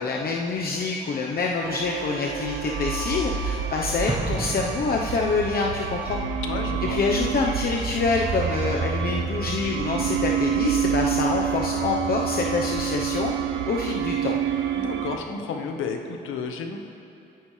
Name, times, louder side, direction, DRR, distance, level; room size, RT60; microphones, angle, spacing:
voice 1, 0.0-6.2 6.9-13.3 13.7-14.4, left 4 dB, 50° left, -1 dB, 1.0 m, -26 dB
sound 1, 1.6-15.2, right 7 dB, 80° right, 0.8 m, -28 dB
voice 2, 3.6-4.0 6.4-7.0 14.7-16.8, left 5 dB, 90° left, 4 dB, 1.3 m, -32 dB
Explosion, 4.1-5.7, right 2 dB, 25° right, 1.5 m, -32 dB
27.0 x 9.3 x 3.4 m, 2.8 s
cardioid pair, 90°, 20 cm